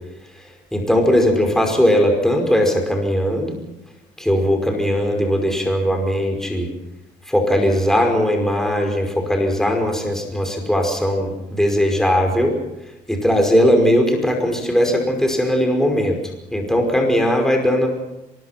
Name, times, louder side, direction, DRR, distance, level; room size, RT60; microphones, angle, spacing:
voice 1, 0.7-3.6 4.2-6.7 7.3-12.6 13.1-16.2 16.5-17.9, equal, 5° left, 3 dB, 5.4 m, -19 dB
24.0 x 21.5 x 6.0 m, 0.96 s
cardioid pair, 110°, 17 cm